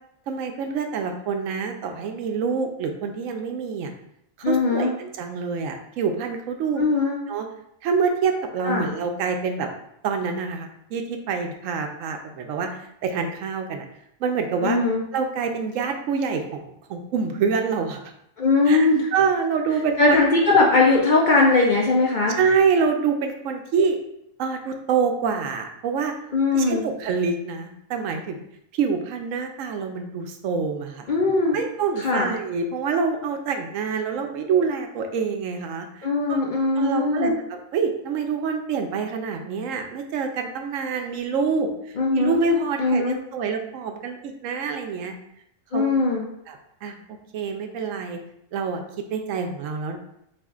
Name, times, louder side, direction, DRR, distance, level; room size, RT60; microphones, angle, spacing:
voice 1, 0.3-3.9 4.4-6.9 7.3-7.5 7.8-9.7 10.0-12.7 13.0-13.8 14.2-14.8 15.1-18.0 18.7-20.2 22.4-24.0 24.4-26.1 26.5-28.4 28.7-31.1 31.5-36.4 36.8-45.1 45.7-45.8 46.5-47.0 47.3-48.2 48.5-48.8 49.1-50.0, right 5 dB, 80° right, 5 dB, 0.9 m, -26 dB
voice 2, 4.4-4.9 6.8-7.2 8.6-8.9 14.6-15.0 18.4-19.1 20.0-22.4 26.3-26.8 31.1-31.6 32.0-32.3 36.0-37.3 42.0-42.4 42.8-43.2 45.7-46.2, left 3 dB, 55° left, -2 dB, 0.5 m, -20 dB
6.8 x 2.4 x 2.4 m, 0.75 s
omnidirectional pair, 1.4 m